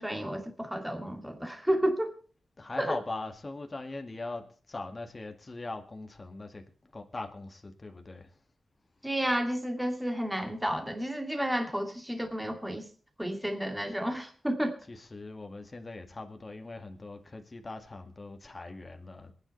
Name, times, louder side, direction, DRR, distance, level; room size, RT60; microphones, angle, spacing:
voice 1, 0.0-2.2 2.8-3.0 9.0-12.9 13.2-14.8, equal, 5° right, 4 dB, 2.5 m, -31 dB
voice 2, 2.6-6.6 6.9-8.3 14.9-19.3, left 2 dB, 30° left, 5 dB, 2.0 m, -40 dB
26.5 x 9.7 x 3.3 m, 0.42 s
wide cardioid pair, 105°, 0 cm